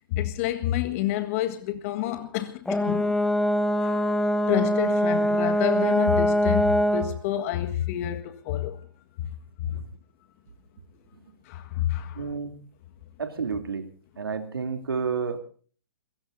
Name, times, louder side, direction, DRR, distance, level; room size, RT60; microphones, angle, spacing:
voice 1, 0.1-3.2 3.8-8.9 9.2-9.3 9.6-9.8 11.4-12.2, left 12 dB, 40° left, 1.6 m, -29 dB
Brass instrument, 2.7-7.1, equal, 5° left, 0.9 m, -23 dB
voice 2, 12.2-12.5 13.2-13.9 14.2-15.4, right 5 dB, 85° right, 3.0 m, -30 dB
28.0 x 17.0 x 2.7 m
hypercardioid pair, 140°, 12 cm